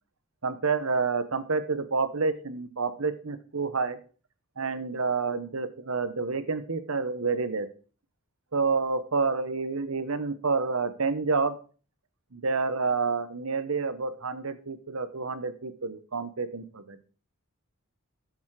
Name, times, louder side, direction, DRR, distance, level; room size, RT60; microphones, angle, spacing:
voice 1, 0.4-4.0 4.6-7.7 8.5-11.6 12.3-17.0, right 4 dB, 80° right, 12 dB, 1.1 m, -29 dB
11.0 x 7.2 x 4.8 m, 0.37 s
head